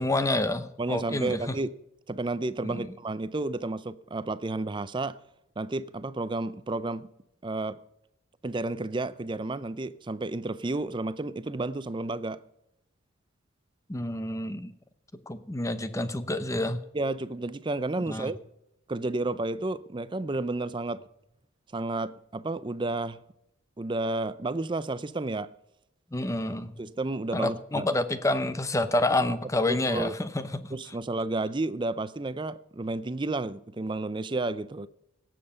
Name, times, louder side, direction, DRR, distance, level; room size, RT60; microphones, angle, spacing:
voice 1, 0.0-1.6 2.6-2.9 13.9-14.7 15.3-16.8 18.1-18.3 26.1-26.7 27.3-30.8, left 1 dB, 15° left, 0.8 m, -28 dB
voice 2, 0.8-1.7 2.1-5.2 5.6-7.1 7.4-7.8 8.4-12.4 16.9-18.4 18.9-21.0 21.7-23.2 23.8-25.5 26.8-27.9 29.7-30.1 30.7-34.9, right 2 dB, 25° right, 0.5 m, -31 dB
17.5 x 7.6 x 5.6 m
head